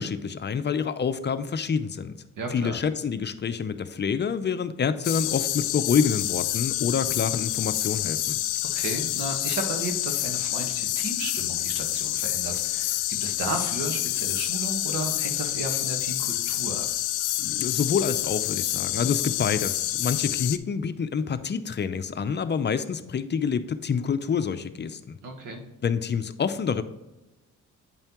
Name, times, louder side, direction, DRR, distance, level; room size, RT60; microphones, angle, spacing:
voice 1, 0.0-2.2 2.5-8.4 17.4-25.1 25.8-26.8, left 6 dB, 35° left, 11 dB, 0.6 m, -27 dB
voice 2, 2.4-2.8 8.7-16.9 25.2-25.6, right 2 dB, 85° right, 4 dB, 1.5 m, -34 dB
sound 1, 5.0-20.6, left 15 dB, 90° left, 0.5 m, -28 dB
9.0 x 5.5 x 3.0 m, 1.0 s
cardioid pair, 90°, 30 cm